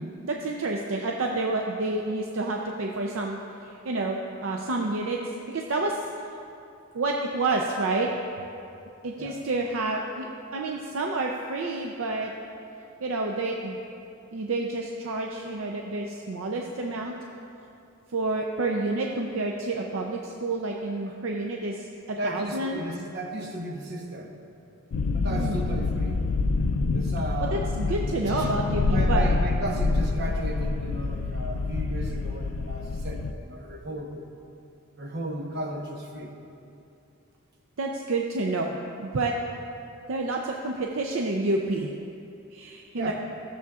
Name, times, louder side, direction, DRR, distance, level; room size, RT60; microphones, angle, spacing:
voice 1, 0.0-5.2 5.5-6.0 6.9-8.1 9.0-10.3 10.5-12.3 13.0-13.8 14.3-17.1 18.1-22.8 25.3-25.6 27.4-29.3 37.8-39.3 40.1-41.9 42.5-43.1, right 2 dB, 70° right, 1 dB, 0.5 m, -29 dB
voice 2, 22.2-24.3 25.1-26.2 26.9-27.6 28.3-28.5 28.9-34.2 35.0-36.3 42.9-43.1, right 1 dB, 55° right, 0 dB, 1.1 m, -34 dB
sound 1, 24.9-33.3, left 3 dB, 90° left, 0.4 m, -27 dB
15.5 x 7.1 x 2.4 m, 2.7 s
head